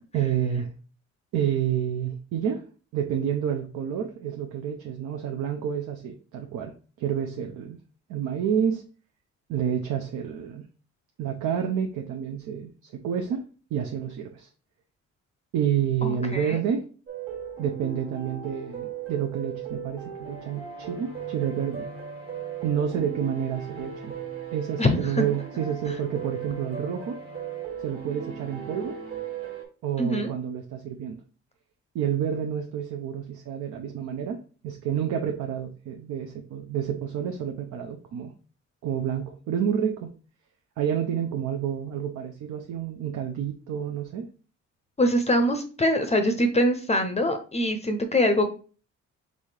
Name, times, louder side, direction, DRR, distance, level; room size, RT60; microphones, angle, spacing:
voice 1, 0.1-0.7 1.3-2.6 2.9-6.7 7.0-7.8 8.1-8.8 9.5-10.7 11.2-14.5 15.5-16.9 17.6-21.9 22.6-24.1 24.5-27.2 27.8-29.0 29.8-31.2 31.9-38.3 38.8-40.1 40.8-44.2, right 8 dB, 75° right, 3 dB, 0.6 m, -29 dB
voice 2, 16.0-16.6 24.8-25.2 25.9-26.0 30.0-30.3 45.0-48.5, left 1 dB, 20° left, 6 dB, 0.5 m, -24 dB
sound 1, 17.1-29.6, right 7 dB, 45° right, 1.5 m, -37 dB
4.1 x 3.5 x 3.2 m, 0.38 s
cardioid pair, 90°, 30 cm